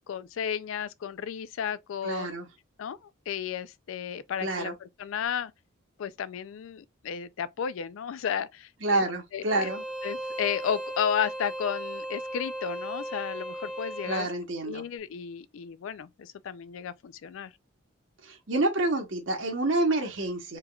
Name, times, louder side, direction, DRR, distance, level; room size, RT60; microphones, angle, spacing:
voice 1, 0.1-2.3 2.8-5.5 6.0-9.0 9.3-9.7 10.0-14.3 14.7-17.5, left 8 dB, 70° left, 0.3 m, -33 dB
voice 2, 2.0-2.5 4.4-4.7 8.8-9.8 14.0-14.8 18.2-20.6, right 2 dB, 60° right, 1.0 m, -28 dB
Bowed string instrument, 9.5-14.3, right 1 dB, 5° right, 0.6 m, -36 dB
3.4 x 3.0 x 2.3 m
head